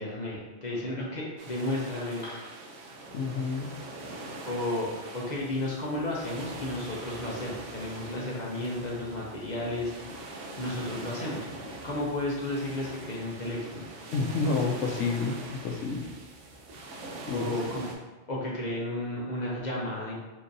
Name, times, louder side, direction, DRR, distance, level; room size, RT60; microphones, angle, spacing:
voice 1, 0.0-2.5 4.4-9.9 10.6-11.5 11.8-13.9 17.3-17.9 18.3-20.2, left 1 dB, 45° left, -4 dB, 0.6 m, -33 dB
sound 1, 1.4-17.9, right 2 dB, 85° right, 0.9 m, -43 dB
voice 2, 3.1-3.7 14.1-15.4 15.6-16.1 17.3-17.5, left 4 dB, 85° left, 2 dB, 0.9 m, -29 dB
4.5 x 2.6 x 2.6 m, 1.2 s
omnidirectional pair, 1.2 m